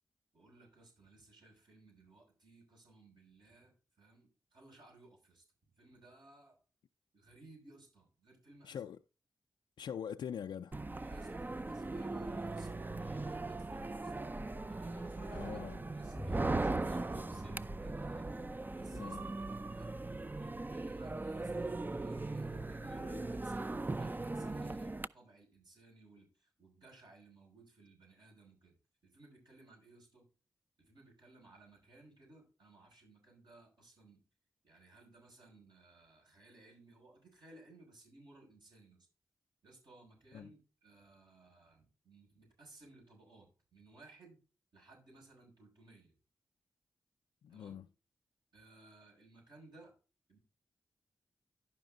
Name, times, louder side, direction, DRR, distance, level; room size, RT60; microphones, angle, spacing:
voice 1, 0.3-5.4 5.8-6.6 7.1-8.8 11.0-14.1 14.7-15.6 15.9-20.0 20.4-28.8 29.0-30.3 30.8-34.2 34.6-39.1 39.6-44.4 44.7-46.1 47.5-47.8 48.5-49.9 50.3-50.4, right 2 dB, 70° right, 5.7 m, -59 dB
voice 2, 8.6-9.0 9.8-10.8 15.3-15.8 18.9-19.3 40.3-40.5 47.4-47.9, left 8 dB, 80° left, 0.4 m, -43 dB
sound 1, 10.7-25.1, right 2 dB, 25° right, 0.5 m, -39 dB
sound 2, 16.1-21.7, equal, 10° left, 0.8 m, -51 dB
11.5 x 5.1 x 3.9 m
supercardioid pair, 40°, 8 cm